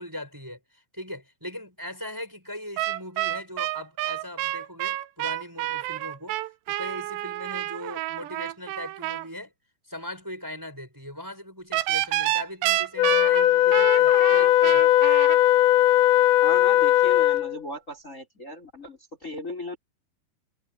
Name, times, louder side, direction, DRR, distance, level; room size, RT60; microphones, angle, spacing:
voice 1, 0.0-6.4 6.7-9.5 9.9-14.9, left 1 dB, 5° right, 7.0 m, -39 dB
sound 1, 2.8-9.3 11.7-15.4, right 16 dB, 85° right, 2.9 m, -29 dB
Wind instrument woodwind instrument, 13.0-17.6, left 14 dB, 90° left, 3.3 m, -19 dB
voice 2, 16.4-19.8, left 1 dB, 15° left, 5.8 m, -36 dB
omnidirectional pair, 5.1 m